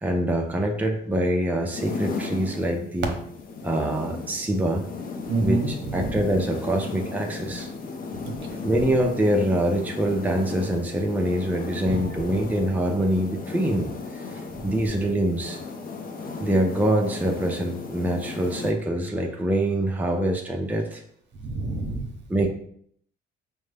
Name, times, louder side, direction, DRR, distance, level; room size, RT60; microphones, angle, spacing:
voice 1, 0.0-3.2 3.6-4.8 5.4-7.7 8.6-15.6 16.4-21.0 22.3-22.5, right 1 dB, 10° right, 1 dB, 0.6 m, -25 dB
sound 1, 1.7-18.7, left 4 dB, 45° left, 0.6 m, -36 dB
voice 2, 5.3-6.2 8.1-8.6 11.8-12.4 14.5-14.7 21.3-22.1, right 3 dB, 65° right, 3 dB, 0.9 m, -29 dB
5.2 x 2.2 x 3.3 m, 0.66 s
cardioid pair, 90°, 20 cm